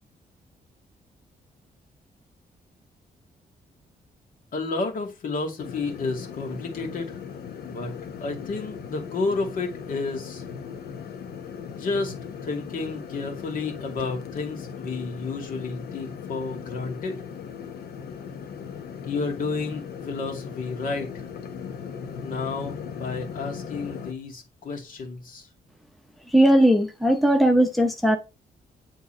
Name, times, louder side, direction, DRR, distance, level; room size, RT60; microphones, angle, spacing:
voice 1, 4.5-7.2 7.6-8.0 8.2-10.4 11.7-12.1 12.4-17.2 19.0-21.2 22.2-25.5, left 3 dB, 60° left, 2.2 m, -31 dB
sound 1, 5.6-24.1, left 7 dB, 90° left, 1.2 m, -38 dB
voice 2, 26.3-28.2, right 1 dB, ahead, 0.8 m, -18 dB
9.4 x 3.6 x 4.4 m
wide cardioid pair, 160°, 16 cm